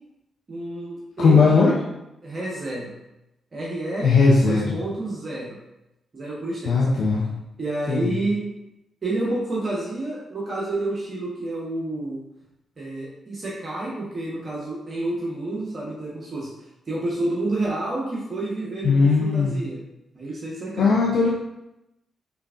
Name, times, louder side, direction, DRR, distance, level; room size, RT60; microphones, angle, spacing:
voice 1, 0.5-1.8 2.2-3.0 3.5-4.1 4.4-5.6 6.1-7.0 7.6-8.4 9.0-12.2 12.8-16.5 16.9-19.8 20.1-21.0, right 2 dB, 45° right, -5 dB, 1.2 m, -29 dB
voice 2, 1.2-1.7 4.0-4.8 6.6-7.2 7.9-8.2 18.8-19.5 20.8-21.3, left 4 dB, 70° left, -4 dB, 0.6 m, -18 dB
5.6 x 3.4 x 2.5 m, 0.91 s
hypercardioid pair, 40°, 0 cm